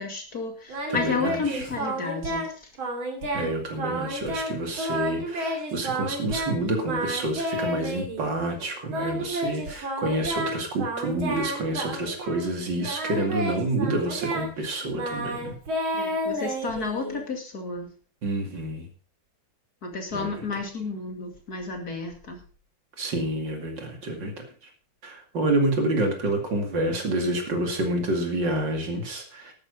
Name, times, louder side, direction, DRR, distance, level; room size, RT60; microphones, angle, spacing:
voice 1, 0.0-2.7 15.9-17.9 19.8-22.4, left 4 dB, 50° left, 3 dB, 2.8 m, -32 dB
Singing, 0.7-2.5 2.8-3.5 3.8-6.5 6.8-8.3 8.9-12.5 12.8-17.2, right 1 dB, 80° right, 3.7 m, -31 dB
voice 2, 0.9-1.7 3.3-15.6 18.2-18.9 20.1-20.3 23.0-24.5 25.0-29.5, right 2 dB, 65° right, 4 dB, 3.1 m, -28 dB
12.0 x 9.5 x 5.3 m, 0.39 s
omnidirectional pair, 2.2 m